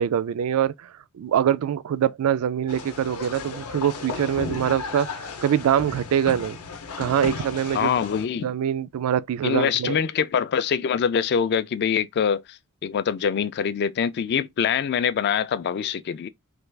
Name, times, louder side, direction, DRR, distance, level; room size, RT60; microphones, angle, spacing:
voice 1, 0.0-6.6 7.0-7.9 8.4-10.0, right 9 dB, 70° right, 0.3 m, -24 dB
sound 1, 2.7-8.3, left 4 dB, 80° left, 0.7 m, -35 dB
voice 2, 7.7-8.5 9.4-16.3, left 7 dB, 50° left, 0.3 m, -24 dB
3.3 x 2.3 x 3.2 m
head